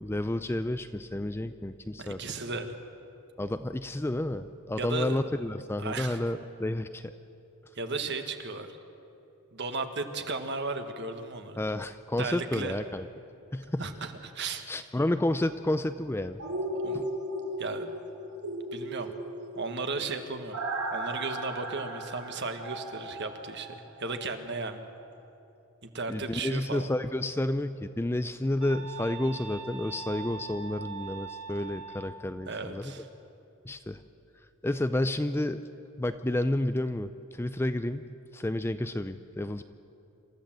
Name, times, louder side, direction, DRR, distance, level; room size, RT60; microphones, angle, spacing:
voice 1, 0.0-2.2 3.4-7.0 11.6-13.0 13.5-13.8 14.7-16.4 16.9-17.1 26.1-32.9 33.7-34.0 34.6-35.6 36.0-38.0 38.3-39.6, left 1 dB, 10° left, 10 dB, 0.4 m, -30 dB
voice 2, 2.0-2.7 4.8-5.2 5.8-6.2 7.7-8.7 9.5-11.6 12.2-12.8 13.8-14.6 16.7-17.0 17.6-17.9 18.7-19.1 19.5-20.6 20.9-24.9 25.8-26.9 32.5-33.1, right 3 dB, 50° right, 7 dB, 1.5 m, -35 dB
sound 1, 16.4-24.3 24.6-24.7, right 1 dB, 90° right, 3.6 m, -36 dB
sound 2, 28.6-32.2, right 5 dB, 25° right, 2.0 m, -42 dB
27.0 x 14.0 x 7.5 m, 2.8 s
head